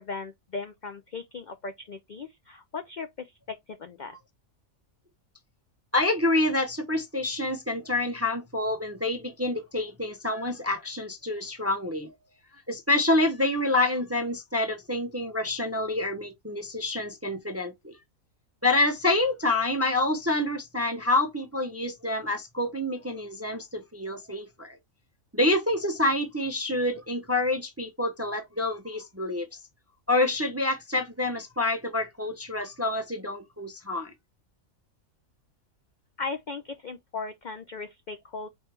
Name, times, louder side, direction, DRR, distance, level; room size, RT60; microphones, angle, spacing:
voice 1, 0.0-4.2 36.2-38.5, left 4 dB, 60° left, 0.4 m, -37 dB
voice 2, 5.9-12.1 12.7-18.0 18.6-24.8 25.3-29.5 30.1-34.1, left 2 dB, 15° right, 0.5 m, -27 dB
4.5 x 3.1 x 3.3 m
omnidirectional pair, 1.4 m